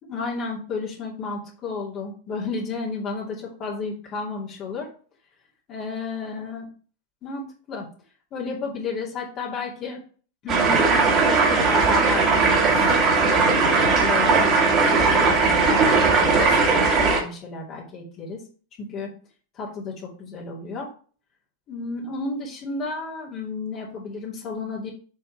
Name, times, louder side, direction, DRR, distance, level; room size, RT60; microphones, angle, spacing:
voice 1, 0.1-4.9 5.7-6.7 7.2-7.9 8.3-10.0 10.4-12.9 13.2-18.4 18.8-19.1 19.5-20.9 21.7-24.9, left 4 dB, 35° left, -4 dB, 2.7 m, -32 dB
sound 1, 10.5-17.2, right 4 dB, 30° right, 2.1 m, -18 dB
7.3 x 4.5 x 4.5 m, 0.42 s
figure-of-eight pair, 90°, 0 cm